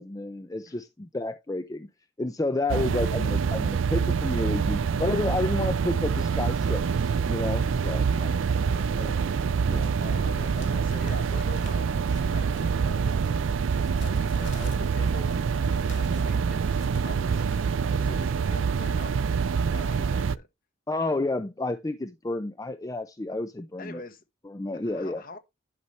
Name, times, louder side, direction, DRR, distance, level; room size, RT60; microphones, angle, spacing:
voice 1, 0.0-1.9 2.2-8.1 8.9-9.1 9.7-9.9 20.9-24.0 24.5-25.2, left 2 dB, 15° left, 0.4 m, -30 dB
sound 1, 2.7-20.4, right 6 dB, 65° right, 0.4 m, -26 dB
voice 2, 8.1-8.9 10.0-16.7 17.0-17.4 18.0-19.2 19.6-20.5 23.8-24.2 24.8-25.4, left 2 dB, 45° left, 1.2 m, -44 dB
sound 2, 8.7-9.6 9.9-17.7, left 7 dB, 60° left, 1.8 m, -54 dB
11.0 x 5.5 x 3.1 m
head